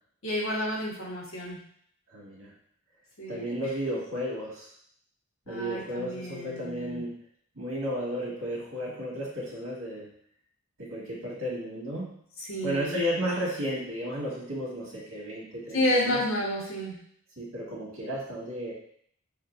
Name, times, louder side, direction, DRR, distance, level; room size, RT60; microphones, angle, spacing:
voice 1, 0.2-1.6 3.2-3.4 5.5-7.0 12.4-13.0 15.7-17.0, left 1 dB, 85° left, -5 dB, 1.5 m, -30 dB
voice 2, 2.1-2.5 3.3-4.7 5.5-7.1 7.6-10.1 10.8-12.2 12.6-16.2 17.4-18.7, equal, 90° right, -4 dB, 1.8 m, -33 dB
6.4 x 2.7 x 2.6 m, 0.64 s
head